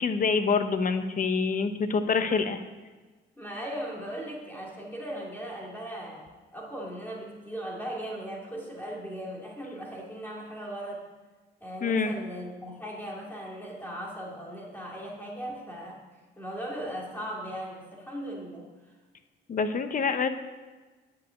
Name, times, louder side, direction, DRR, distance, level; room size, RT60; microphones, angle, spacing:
voice 1, 0.0-2.6 11.8-12.1 19.5-20.3, left 5 dB, 40° left, 9 dB, 0.9 m, -26 dB
voice 2, 3.4-11.1 11.6-16.0 16.4-18.7, right 1 dB, 10° left, -3 dB, 2.6 m, -38 dB
10.0 x 5.4 x 8.0 m, 1.3 s
cardioid pair, 90°, 20 cm